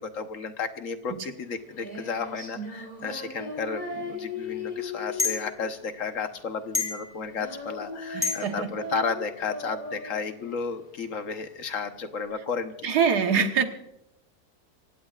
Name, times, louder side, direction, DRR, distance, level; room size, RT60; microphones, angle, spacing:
voice 1, 0.0-13.0, left 5 dB, 55° left, 8 dB, 1.4 m, -33 dB
Female singing, 1.3-12.2, left 2 dB, 30° left, 4.0 m, -38 dB
sound 1, 3.9-4.0 5.2-5.4 6.7-7.1 8.2-8.5, left 4 dB, 10° left, 3.9 m, -27 dB
voice 2, 8.1-8.7 12.8-13.6, right 6 dB, 90° right, 6 dB, 1.8 m, -24 dB
26.5 x 17.0 x 2.5 m, 0.84 s
omnidirectional pair, 1.7 m